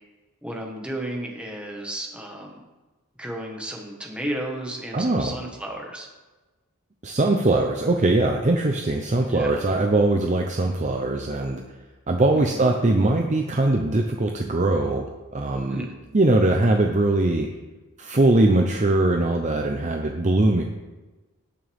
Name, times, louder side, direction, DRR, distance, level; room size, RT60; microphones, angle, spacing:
voice 1, 0.4-2.6 3.2-6.1 9.3-9.6 12.3-12.6 15.7-15.9, right 1 dB, 5° right, 0 dB, 1.5 m, -33 dB
voice 2, 4.9-5.3 7.0-11.6 12.1-15.1 15.3-15.9 16.1-17.5 18.0-20.6, right 2 dB, 35° right, 3 dB, 0.7 m, -21 dB
18.0 x 6.3 x 3.5 m, 1.2 s
head